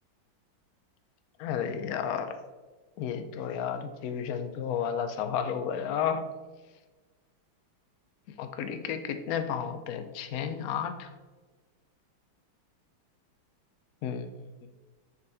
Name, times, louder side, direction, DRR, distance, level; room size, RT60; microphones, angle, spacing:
voice 1, 1.4-2.4 3.0-6.3 8.4-11.1 14.0-14.3, left 8 dB, 75° left, 8 dB, 0.8 m, -32 dB
7.0 x 6.7 x 3.4 m, 1.3 s
omnidirectional pair, 2.2 m